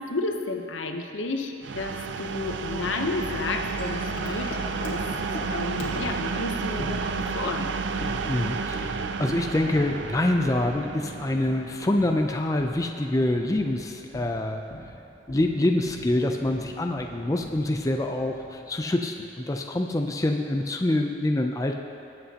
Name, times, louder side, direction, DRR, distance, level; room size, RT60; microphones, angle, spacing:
voice 1, 0.0-5.0 5.5-7.7, left 3 dB, 85° left, 4 dB, 0.9 m, -32 dB
sound 1, 1.6-13.3, right 5 dB, 65° right, 0.4 m, -32 dB
Wind chime, 2.7-18.9, left 1 dB, 65° left, 1.6 m, -41 dB
voice 2, 8.3-14.6 15.3-21.7, left 1 dB, 15° left, 3 dB, 0.4 m, -26 dB
20.0 x 8.0 x 2.9 m, 2.7 s
head